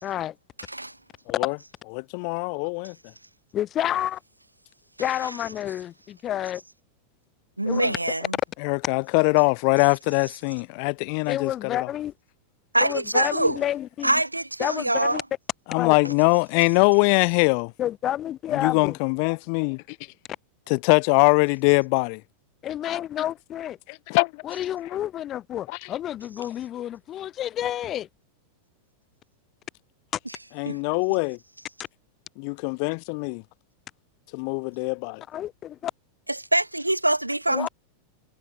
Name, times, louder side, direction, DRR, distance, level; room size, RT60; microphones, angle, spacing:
voice 1, 0.0-0.4 3.5-4.2 5.0-6.6 7.6-8.0 11.3-12.1 12.8-14.1 14.6-15.2 15.8-16.1 17.8-19.0 22.6-23.8 24.4-28.1 35.3-35.9 37.5-37.7, left 11 dB, 30° left, 2.2 m, -29 dB
voice 2, 1.9-2.9 8.6-11.8 15.7-17.7 18.5-20.0 20.7-22.2 23.9-24.4 30.6-31.4 32.4-33.4 34.3-35.2, left 40 dB or more, 45° left, 1.6 m, -22 dB
voice 3, 7.6-8.2 12.7-13.6 14.0-15.2 30.7-30.8 36.5-37.7, right 1 dB, 85° right, 0.9 m, -24 dB
figure-of-eight pair, 90°, 0 cm